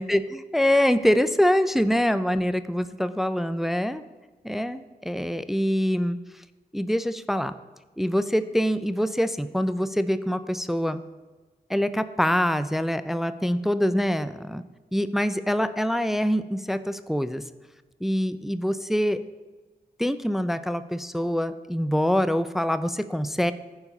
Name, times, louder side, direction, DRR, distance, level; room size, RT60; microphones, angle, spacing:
voice 1, 0.0-4.0 4.4-6.2 6.7-7.5 8.0-11.0 11.7-14.6 14.9-17.4 18.0-19.2 20.0-23.5, equal, ahead, 12 dB, 0.5 m, -24 dB
11.0 x 4.7 x 5.4 m, 1.3 s
cardioid pair, 45°, 17 cm